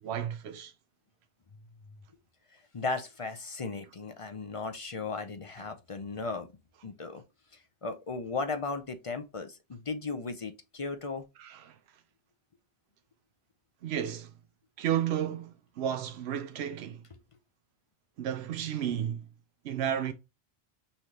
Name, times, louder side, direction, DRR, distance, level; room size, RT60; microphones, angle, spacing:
voice 1, 0.0-0.7 11.4-11.7 13.8-14.3 14.8-17.0 18.2-19.2 19.6-20.1, right 10 dB, 85° right, 0.8 m, -32 dB
voice 2, 2.7-6.5 6.8-7.2 7.5-11.2, left 3 dB, 40° left, 0.5 m, -36 dB
5.6 x 3.2 x 2.8 m
omnidirectional pair, 1.1 m